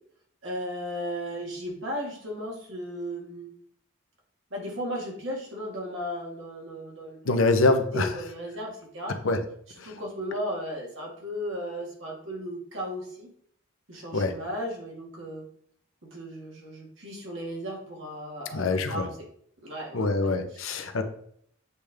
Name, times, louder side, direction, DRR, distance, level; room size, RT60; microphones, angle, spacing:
voice 1, 0.4-3.5 4.5-7.5 7.9-9.2 9.8-13.3 13.9-15.5 16.0-19.2 19.6-20.6, equal, 65° right, -2 dB, 2.0 m, -35 dB
voice 2, 7.2-8.1 9.2-9.4 9.8-9.9 14.1-14.3 18.5-19.1 19.9-21.0, left 3 dB, 80° left, 7 dB, 0.8 m, -24 dB
8.2 x 3.4 x 3.5 m, 0.65 s
head